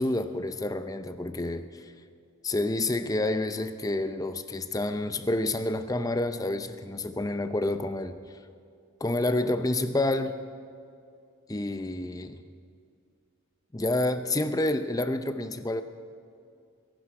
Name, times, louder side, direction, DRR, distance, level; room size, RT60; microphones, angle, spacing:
voice 1, 0.0-1.8 2.4-8.2 9.0-10.4 11.5-12.4 13.7-15.8, left 2 dB, 15° left, 10 dB, 0.5 m, -28 dB
21.5 x 11.5 x 4.7 m, 2.4 s
head